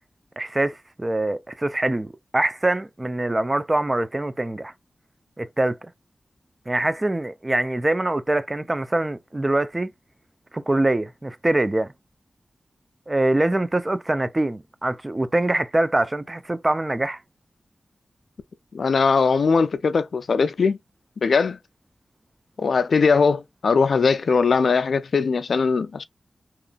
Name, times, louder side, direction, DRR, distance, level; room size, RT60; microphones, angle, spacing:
voice 1, 0.4-4.7 5.4-5.9 6.7-9.9 10.5-11.9 13.1-17.2, right 2 dB, 30° right, 0.4 m, -24 dB
voice 2, 18.7-20.8 21.2-21.6 22.6-26.0, left 5 dB, 80° left, 0.3 m, -20 dB
2.9 x 2.5 x 2.2 m
cardioid pair, 40°, 0 cm